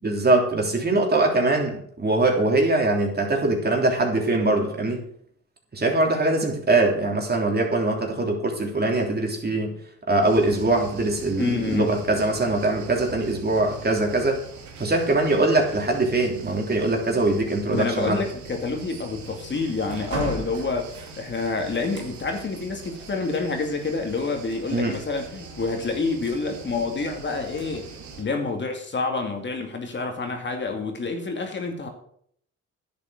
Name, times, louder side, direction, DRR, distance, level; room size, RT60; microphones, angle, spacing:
voice 1, 0.0-5.0 5.7-9.7 10.1-14.4 14.8-18.2 24.7-25.0, right 2 dB, 30° right, 1 dB, 3.4 m, -22 dB
sound 1, 10.2-28.2, right 3 dB, 70° right, 2.7 m, -40 dB
voice 2, 11.4-11.9 17.7-27.9 28.2-31.9, left 3 dB, 40° left, 3 dB, 2.3 m, -28 dB
10.5 x 8.6 x 6.5 m, 0.64 s
cardioid pair, 90°, 30 cm